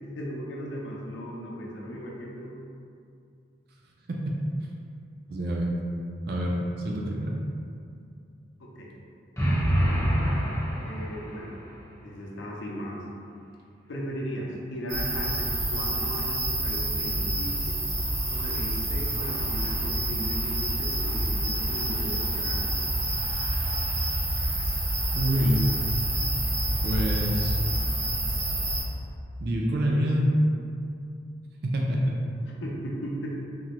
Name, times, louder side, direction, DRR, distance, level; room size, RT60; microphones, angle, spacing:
voice 1, 0.1-2.6 8.6-8.9 10.8-11.6 12.0-13.0 13.9-17.8 18.3-22.8 32.4-33.4, equal, 80° left, -2 dB, 0.5 m, -37 dB
voice 2, 5.3-5.7 6.3-6.6 6.8-7.3 25.1-25.7 26.8-27.6 29.4-30.3 31.6-32.2, equal, 55° right, -2 dB, 0.4 m, -26 dB
sound 1, 9.4-11.4, equal, 15° left, 0.6 m, -25 dB
sound 2, 14.9-28.8, right 1 dB, 75° right, 0.8 m, -28 dB
3.6 x 2.1 x 2.9 m, 2.4 s
head